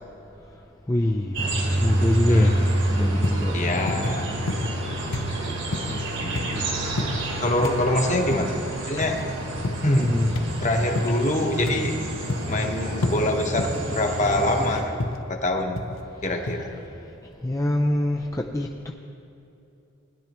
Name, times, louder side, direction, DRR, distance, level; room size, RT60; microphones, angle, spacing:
voice 1, 0.9-2.6 2.9-3.5 5.9-6.8 7.6-7.7 10.0-10.3 17.4-18.9, left 1 dB, 15° left, 1 dB, 0.4 m, -25 dB
sound 1, 1.3-14.8, right 1 dB, 65° right, 1.9 m, -28 dB
voice 2, 2.3-2.7 3.5-4.4 7.4-8.5 8.8-9.2 9.8-10.2 10.6-12.0 12.5-15.8 16.2-16.7, left 1 dB, 35° left, 3 dB, 1.1 m, -24 dB
sound 2, 3.2-3.5 3.9-4.2 4.5-4.9 5.1-5.3 5.7-6.0 6.4-6.6 7.0-7.2 7.6-7.9 8.3-8.5 9.0-9.2 9.6-9.9 10.4-10.6 11.0-11.2 11.7-11.9 12.3-12.6 13.0-13.2 13.6-13.8 14.3-14.6 15.0-15.2 15.8-16.0 16.5-16.6, left 2 dB, 85° left, 0.8 m, -29 dB
19.5 x 10.5 x 3.0 m, 2.8 s
head